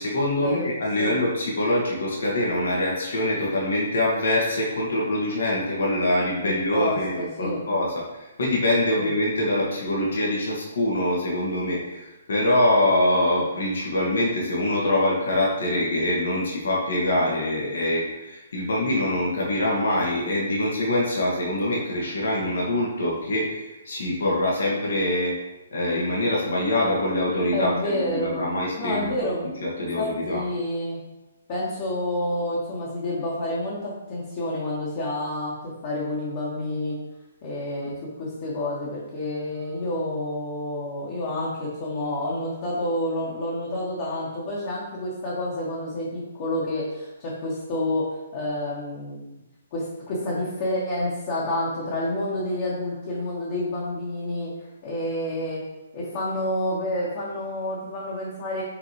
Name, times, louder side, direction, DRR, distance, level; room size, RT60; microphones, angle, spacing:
voice 1, 0.0-25.4 25.7-29.3 29.6-30.4, left 1 dB, 65° left, -4 dB, 1.9 m, -24 dB
voice 2, 6.4-7.6 8.9-9.1 27.5-28.4 28.8-29.5 30.0-31.0 31.5-35.5 35.8-37.0 37.4-49.3 49.7-54.5 54.8-55.6 55.9-58.6, left 1 dB, 40° left, -7 dB, 1.8 m, -29 dB
7.1 x 4.1 x 3.3 m, 1.0 s
figure-of-eight pair, 135°, 0 cm